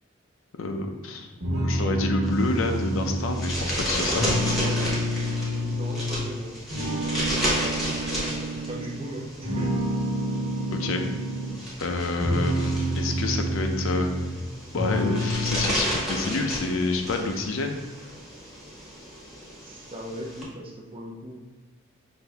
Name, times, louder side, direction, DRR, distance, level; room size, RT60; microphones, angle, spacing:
voice 1, 0.6-1.3 1.6-4.3 10.7-11.0 11.8-14.1 14.7-17.8, left 3 dB, 80° left, 4 dB, 0.5 m, -28 dB
sound 1, 1.4-6.3 6.7-9.0 9.4-11.6 12.0-14.4 14.7-15.7, equal, 75° right, 1.4 m, -28 dB
sound 2, 2.2-20.4, equal, ahead, 1.0 m, -33 dB
voice 2, 5.2-6.6 8.0-9.8 19.6-21.4, right 1 dB, 25° right, -1 dB, 0.6 m, -39 dB
5.9 x 2.6 x 3.4 m, 1.2 s
head